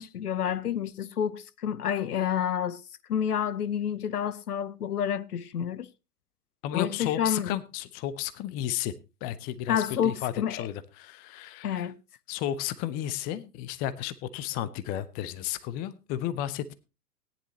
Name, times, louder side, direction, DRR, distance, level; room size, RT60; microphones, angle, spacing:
voice 1, 0.0-2.8 3.1-5.9 6.7-7.6 9.7-10.7 11.6-12.0, left 9 dB, 70° left, 0.9 m, -29 dB
voice 2, 6.6-8.9 9.2-11.9 12.3-16.7, left 12 dB, 20° left, 0.6 m, -33 dB
17.5 x 10.5 x 2.8 m
figure-of-eight pair, 105°, 48 cm